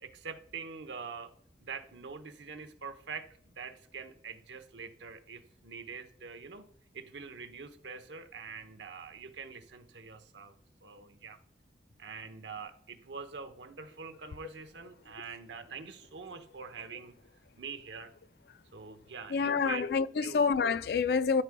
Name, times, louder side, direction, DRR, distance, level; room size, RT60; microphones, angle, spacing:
voice 1, 0.0-1.3 1.6-3.3 3.6-6.7 6.9-10.5 10.8-11.4 12.0-17.1 17.6-18.1 18.7-19.9 20.2-20.4, right 5 dB, 80° right, 0.8 m, -44 dB
voice 2, 19.3-21.4, left 5 dB, 60° left, 0.3 m, -27 dB
13.0 x 4.8 x 2.2 m
head